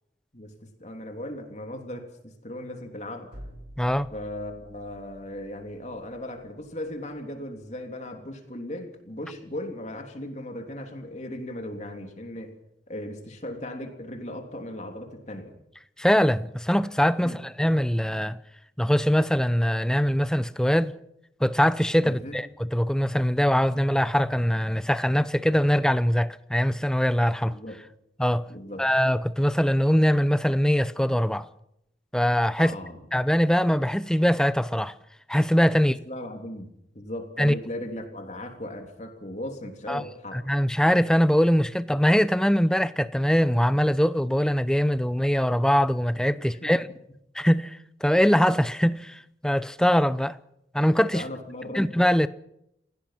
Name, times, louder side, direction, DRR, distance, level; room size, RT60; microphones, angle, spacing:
voice 1, 0.3-3.4 4.1-12.6 12.9-15.6 17.2-17.4 22.0-22.3 27.5-27.8 28.5-28.9 32.6-33.0 36.1-40.4 46.4-46.7 51.1-51.8, left 1 dB, 40° left, 3.3 m, -37 dB
sound 1, 3.3-7.2, equal, 85° right, 6.2 m, -49 dB
voice 2, 3.8-4.1 16.0-18.4 18.8-20.9 21.4-27.6 28.2-28.4 28.8-31.5 32.1-32.7 33.1-34.9 35.3-36.0 37.4-37.5 39.9-40.0 40.3-46.9 47.3-50.4 50.7-51.2 51.7-52.3, equal, 5° left, 0.7 m, -22 dB
29.5 x 16.5 x 5.9 m
head